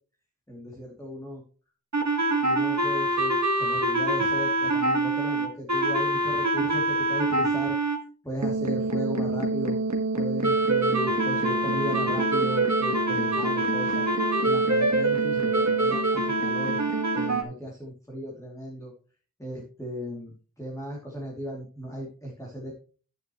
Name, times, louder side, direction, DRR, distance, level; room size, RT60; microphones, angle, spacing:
voice 1, 0.5-1.4 2.4-7.8 8.2-9.8 10.1-14.1 14.4-16.8 17.1-18.9 19.4-22.7, equal, 10° left, -3 dB, 2.8 m, -36 dB
sound 1, 1.9-8.0 8.4-17.4, right 2 dB, 50° right, 1.8 m, -25 dB
10.5 x 9.8 x 3.1 m, 0.38 s
wide cardioid pair, 60°, 35 cm